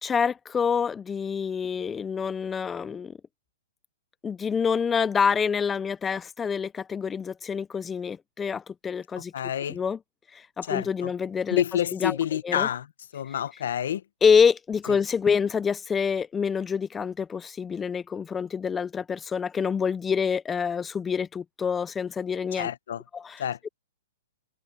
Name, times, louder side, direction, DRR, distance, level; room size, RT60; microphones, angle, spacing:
voice 1, 0.0-3.1 4.2-9.3 9.7-10.0 10.3-11.6 11.9-12.2 12.4-12.7 14.2-22.7 23.1-23.4, left 6 dB, 10° left, 0.3 m, -26 dB
voice 2, 9.3-9.8 10.7-11.1 11.5-12.9 13.1-14.0 14.9-15.0 22.5-23.0 23.4-23.6, left 10 dB, 65° left, 1.0 m, -28 dB
hypercardioid pair, 160°, 0 cm